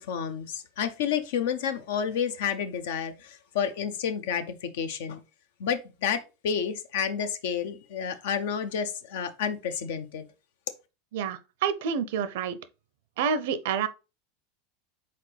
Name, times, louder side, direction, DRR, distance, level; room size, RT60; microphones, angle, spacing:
voice 1, 0.0-5.2 5.6-10.2, left 7 dB, 75° left, 0.7 m, -30 dB
voice 2, 11.1-12.6 13.2-13.9, right 7 dB, 70° right, 0.5 m, -28 dB
4.2 x 3.8 x 3.3 m
supercardioid pair, 115°, 0 cm